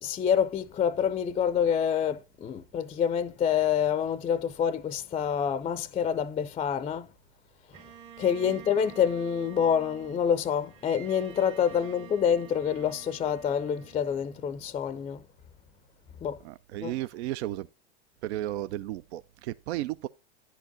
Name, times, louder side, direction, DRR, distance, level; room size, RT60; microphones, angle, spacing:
voice 1, 0.0-7.1 8.2-15.2 16.2-16.4 16.8-16.9, left 8 dB, 20° left, 0.4 m, -27 dB
Bowed string instrument, 7.7-15.0, right 9 dB, 45° right, 1.2 m, -49 dB
voice 2, 16.4-17.7 18.2-20.1, right 14 dB, 75° right, 0.5 m, -34 dB
10.5 x 4.6 x 3.9 m
hypercardioid pair, 105°, 33 cm